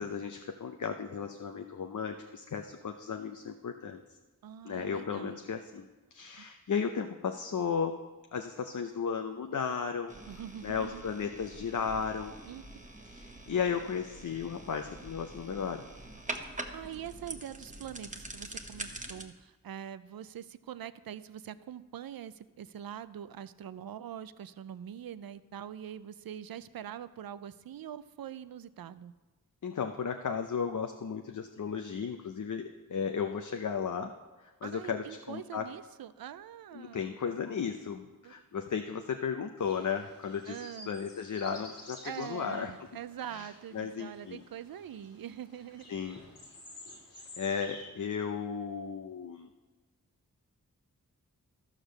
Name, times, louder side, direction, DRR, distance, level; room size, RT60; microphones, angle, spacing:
voice 1, 0.0-4.0 4.6-8.0 8.3-10.1 10.6-12.3 13.1-15.8 29.6-34.1 34.4-35.7 36.7-42.7 43.3-44.4 45.9-46.2 47.4-49.5, left 6 dB, 55° left, 5 dB, 0.6 m, -35 dB
voice 2, 4.4-5.4 6.4-6.5 10.3-11.0 12.5-12.6 16.4-29.1 34.6-37.2 38.2-38.3 40.5-40.9 42.0-45.9, right 10 dB, 80° right, 15 dB, 0.5 m, -44 dB
sound 1, 10.1-19.2, right 2 dB, 20° right, 1.0 m, -44 dB
sound 2, 39.6-47.9, left 2 dB, 80° left, 2.2 m, -52 dB
13.0 x 5.0 x 6.4 m, 1.2 s
cardioid pair, 45°, 35 cm